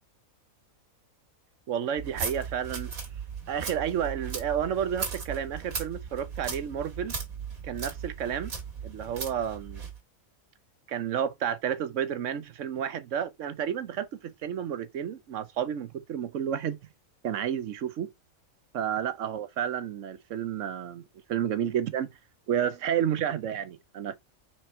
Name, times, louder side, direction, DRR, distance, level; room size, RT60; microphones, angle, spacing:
voice 1, 1.7-2.9 3.5-7.1 7.6-8.5 8.8-9.8 10.9-16.8 17.2-18.1 18.7-22.1 22.5-24.2, right 9 dB, 65° right, 1.1 m, -31 dB
sound 1, 2.0-10.0, right 5 dB, 85° right, 2.3 m, -37 dB
5.4 x 4.5 x 4.4 m
omnidirectional pair, 1.5 m